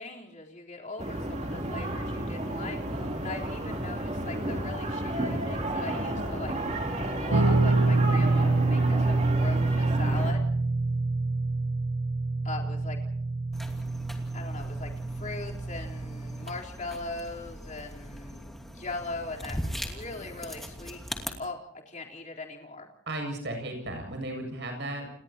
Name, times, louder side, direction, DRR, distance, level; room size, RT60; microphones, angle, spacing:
voice 1, 0.0-6.5 7.1-10.5 12.4-13.0 14.3-21.0 21.4-21.6 21.9-22.9, left 3 dB, 35° left, -1 dB, 3.9 m, -40 dB
sound 1, 1.0-10.3, right 1 dB, 35° right, 3.1 m, -32 dB
Guitar, 7.3-16.6, right 3 dB, 85° right, 1.1 m, -26 dB
sound 2, 13.5-21.3, equal, ahead, 2.7 m, -40 dB
voice 2, 23.1-25.1, right 1 dB, 55° right, 3 dB, 7.4 m, -35 dB
30.0 x 30.0 x 2.9 m, 0.67 s
head